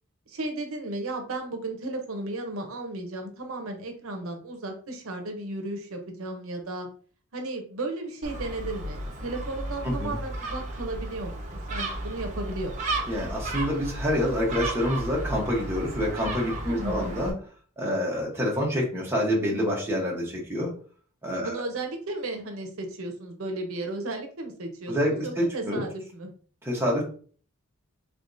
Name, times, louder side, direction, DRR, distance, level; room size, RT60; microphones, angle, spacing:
voice 1, 0.3-6.9 7.3-12.9 16.6-17.1 21.4-26.3, right 2 dB, 75° right, 4 dB, 0.7 m, -34 dB
Gull seagull, 8.2-17.3, right 2 dB, 35° right, 0.8 m, -34 dB
voice 2, 9.8-10.2 13.1-17.3 17.8-20.7 21.2-21.6 24.9-25.8 26.6-27.0, equal, 10° right, -3 dB, 1.0 m, -27 dB
3.5 x 3.4 x 2.6 m, 0.43 s
head